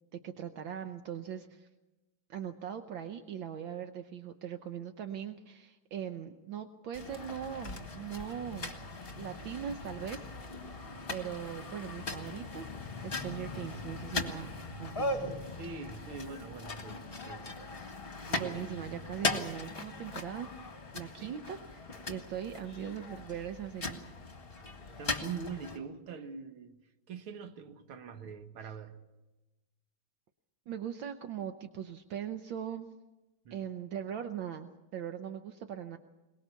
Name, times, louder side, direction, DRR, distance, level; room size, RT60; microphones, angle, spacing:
voice 1, 0.1-1.7 2.3-8.7 9.2-10.3 11.1-12.7 13.0-14.5 14.8-15.3 18.3-20.5 20.9-24.0 30.7-32.9 33.5-36.0, right 9 dB, 70° right, 1.6 m, -40 dB
sound 1, 6.9-25.8, left 3 dB, 30° left, 1.9 m, -39 dB
voice 2, 15.0-17.5 21.2-21.4 24.8-26.8 27.1-29.0 33.5-33.7, right 5 dB, 90° right, 2.2 m, -44 dB
22.5 x 20.5 x 7.0 m
omnidirectional pair, 2.2 m